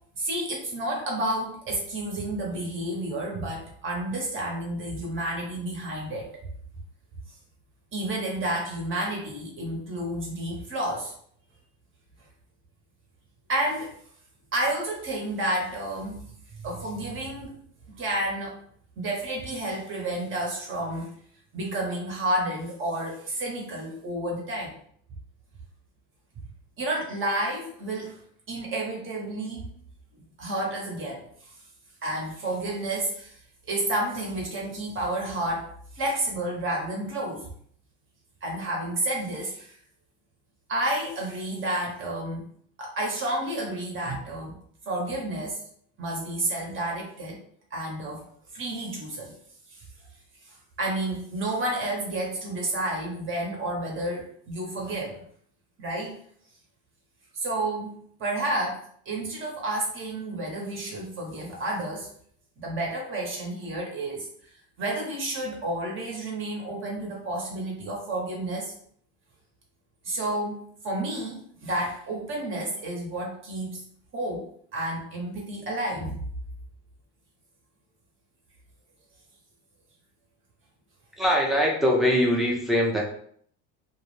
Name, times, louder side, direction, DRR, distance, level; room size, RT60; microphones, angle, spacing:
voice 1, 0.2-6.3 7.9-11.1 13.5-13.9 14.5-16.2 16.5-17.6 18.0-18.5 19.0-21.1 21.5-24.7 26.8-28.2 28.5-29.7 30.4-31.5 32.0-33.4 33.7-35.7 35.9-37.5 38.4-39.8 40.7-42.5 42.8-44.6 44.9-45.6 46.0-47.4 47.7-48.2 48.5-49.3 49.7-49.8 50.4-55.2 55.8-56.1 57.3-58.8 59.1-62.1 62.6-68.7 70.0-73.8 74.1-74.5 74.7-76.2, right 1 dB, 35° right, -1 dB, 0.7 m, -30 dB
voice 2, 81.2-83.1, equal, ahead, -2 dB, 0.5 m, -22 dB
2.3 x 2.0 x 3.0 m, 0.62 s
supercardioid pair, 115°, 35 cm